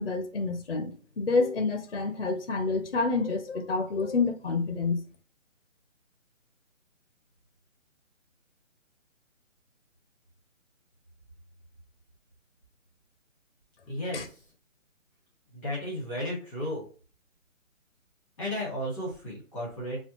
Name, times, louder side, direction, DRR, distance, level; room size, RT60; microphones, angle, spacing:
voice 1, 0.0-5.0 14.1-14.2, left 4 dB, 45° left, 0.5 m, -28 dB
voice 2, 13.9-14.4 15.5-16.8 18.4-20.0, left 1 dB, ahead, 1.2 m, -34 dB
5.2 x 2.3 x 2.8 m
hypercardioid pair, 170°, 40 cm